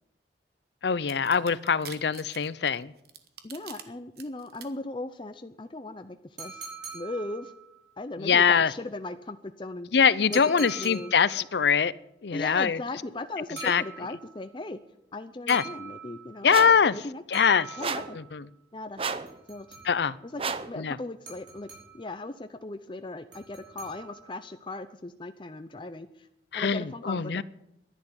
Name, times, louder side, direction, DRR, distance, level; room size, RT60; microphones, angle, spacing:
voice 1, 0.8-2.9 8.2-8.7 9.9-11.9 12.2-12.8 13.6-13.8 15.5-15.6 16.4-17.0 17.3-17.7 18.1-18.4 19.8-20.2 20.8-21.0 26.5-27.4, left 6 dB, 70° left, 0.6 m, -23 dB
sound 1, 1.1-3.8 4.2-4.7, right 9 dB, 60° right, 1.4 m, -44 dB
voice 2, 3.4-6.6 6.9-7.5 8.0-9.9 10.2-11.1 12.3-14.8 15.1-16.5 16.9-17.2 17.8-18.2 18.7-19.0 19.5-19.7 20.2-20.4 20.7-21.7 21.9-26.1 26.5-27.4, left 2 dB, 30° left, 0.6 m, -38 dB
sound 2, 6.4-7.9 10.3-11.5 13.6-14.4 15.5-16.5 17.3-18.3 19.3-20.2 21.3-22.2 23.3-24.4, right 4 dB, 80° right, 5.5 m, -43 dB
sound 3, 16.5-16.9 17.8-18.2 19.0-19.3 20.4-20.8, right 5 dB, 30° right, 0.7 m, -32 dB
11.0 x 10.5 x 9.4 m
head